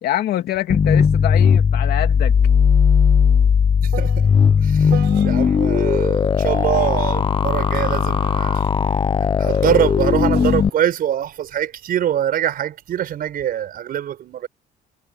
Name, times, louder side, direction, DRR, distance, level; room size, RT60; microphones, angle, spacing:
voice 1, 0.0-2.3, left 13 dB, 70° left, 2.9 m, -25 dB
sound 1, 0.6-0.7 1.0-5.8 6.7-12.3 13.1-13.5, right 17 dB, 85° right, 6.7 m, -40 dB
sound 2, 0.7-10.7, left 6 dB, 30° left, 0.7 m, -17 dB
voice 2, 3.8-4.3 4.6-8.7 9.4-14.5, right 10 dB, 60° right, 5.8 m, -24 dB
cardioid pair, 110°, 17 cm